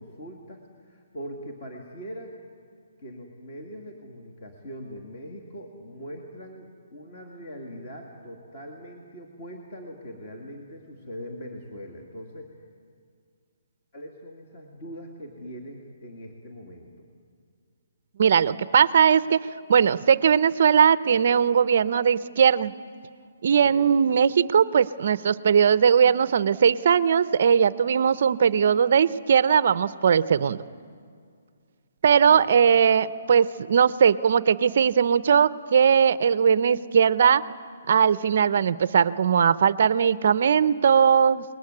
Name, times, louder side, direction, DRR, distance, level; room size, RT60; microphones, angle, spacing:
voice 1, 0.0-2.4 3.0-12.5 13.9-17.1 23.5-23.9 32.1-32.8, equal, 30° left, 1 dB, 2.3 m, -41 dB
voice 2, 18.2-19.4 19.7-22.7 23.4-30.6 32.0-37.4 37.9-41.4, right 7 dB, 45° right, 16 dB, 0.6 m, -19 dB
29.0 x 20.5 x 9.7 m, 2.2 s
hypercardioid pair, 180°, 0 cm